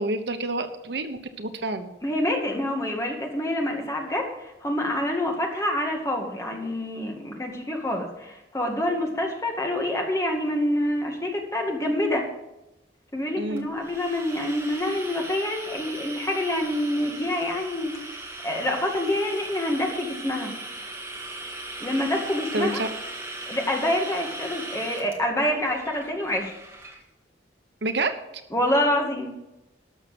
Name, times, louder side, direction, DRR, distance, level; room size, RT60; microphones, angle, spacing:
voice 1, 0.0-1.9 13.4-13.7 22.5-22.9 27.8-28.1, right 2 dB, 75° right, 9 dB, 1.0 m, -28 dB
voice 2, 2.0-12.2 13.1-20.5 21.8-22.8 23.5-26.5 28.5-29.3, left 1 dB, 15° left, 1 dB, 2.1 m, -27 dB
sound 1, 13.6-27.0, right 2 dB, 15° right, 1.8 m, -38 dB
13.0 x 6.5 x 7.8 m, 0.93 s
head